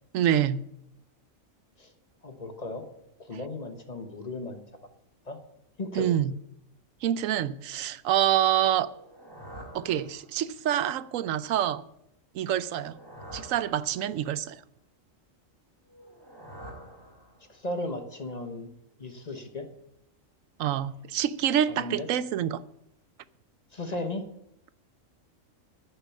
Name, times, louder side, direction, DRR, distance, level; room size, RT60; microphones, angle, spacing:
voice 1, 0.1-0.6 5.9-6.3 7.0-8.9 9.7-11.8 12.3-13.0 13.3-14.6 20.6-22.6, right 10 dB, 85° right, 1.0 m, -26 dB
voice 2, 2.2-2.9 3.2-4.6 5.3-5.4 5.8-6.1 17.5-18.7 19.0-19.7 21.7-22.1 23.7-24.2, left 2 dB, 35° left, 1.1 m, -35 dB
sound 1, 8.8-10.6 12.6-14.4 15.9-17.7, right 1 dB, 15° right, 3.1 m, -47 dB
10.5 x 6.9 x 8.3 m
omnidirectional pair, 1.3 m